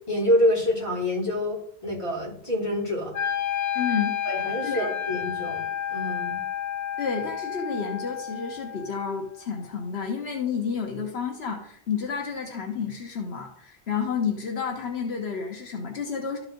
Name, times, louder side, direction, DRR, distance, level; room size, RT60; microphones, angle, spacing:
voice 1, 0.1-3.2 4.3-5.6 5.9-6.4, left 1 dB, 30° left, -5 dB, 3.6 m, -26 dB
Wind instrument woodwind instrument, 3.1-9.2, left 9 dB, 50° left, 0.7 m, -31 dB
voice 2, 3.7-4.2 4.6-4.9 7.0-16.4, left 6 dB, 85° left, 2 dB, 1.5 m, -30 dB
12.5 x 4.8 x 3.9 m, 0.65 s
omnidirectional pair, 1.1 m